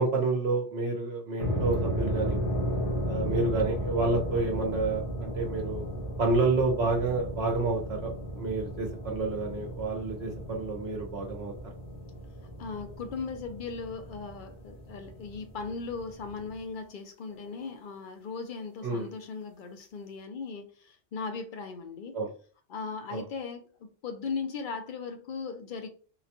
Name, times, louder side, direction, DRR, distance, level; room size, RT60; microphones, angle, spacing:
voice 1, 0.0-2.4 3.1-5.8 6.2-11.5 18.8-19.1 22.1-22.3 23.1-23.2, right 3 dB, 65° right, 0.9 m, -29 dB
sound 1, 1.4-16.6, equal, 75° left, 1.7 m, -34 dB
voice 2, 12.6-22.2 22.7-25.9, left 5 dB, 60° left, 0.6 m, -38 dB
3.8 x 2.2 x 2.8 m
omnidirectional pair, 1.2 m